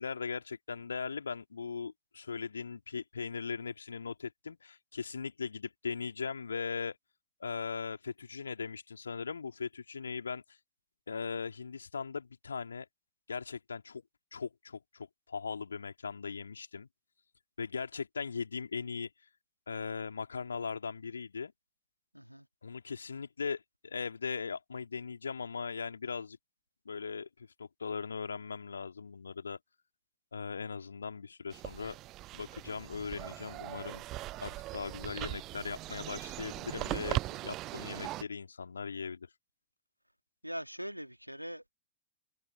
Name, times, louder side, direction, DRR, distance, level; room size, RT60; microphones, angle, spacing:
voice 1, 0.0-7.0 7.4-10.6 11.1-12.9 13.3-14.0 14.3-16.9 17.6-19.1 19.7-21.5 22.6-26.4 26.8-29.6 30.3-32.0 32.3-34.0 34.4-39.3, left 5 dB, 75° left, 2.9 m, -39 dB
voice 2, 22.1-22.5 37.7-38.1 40.4-41.7, equal, 90° right, 2.8 m, -42 dB
sound 1, 31.5-38.2, right 17 dB, 35° right, 0.5 m, -39 dB
figure-of-eight pair, 90°, 0 cm